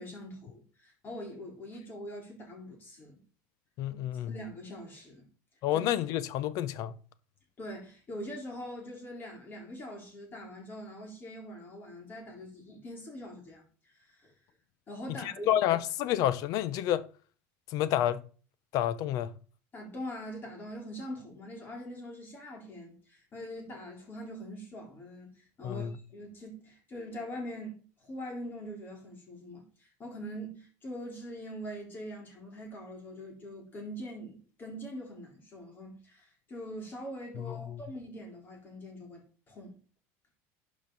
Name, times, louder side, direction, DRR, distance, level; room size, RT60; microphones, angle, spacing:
voice 1, 0.0-3.2 3.9-4.0 4.3-5.3 5.7-5.8 7.6-14.3 14.9-15.5 19.7-39.7, equal, 25° left, 4.0 m, -43 dB
voice 2, 3.8-4.3 5.6-6.9 15.2-17.1 17.7-18.2 18.7-19.3 25.6-26.0 37.4-37.8, left 12 dB, 55° left, 0.7 m, -29 dB
11.5 x 5.1 x 4.0 m
cardioid pair, 140°, 7 cm